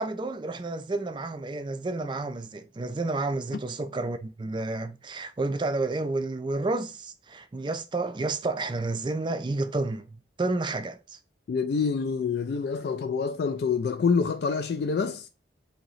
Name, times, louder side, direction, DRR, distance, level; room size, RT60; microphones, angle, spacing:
voice 1, 0.0-11.2, right 2 dB, 25° right, 0.4 m, -30 dB
voice 2, 11.5-15.3, left 5 dB, 60° left, 0.3 m, -26 dB
2.9 x 2.8 x 3.9 m
head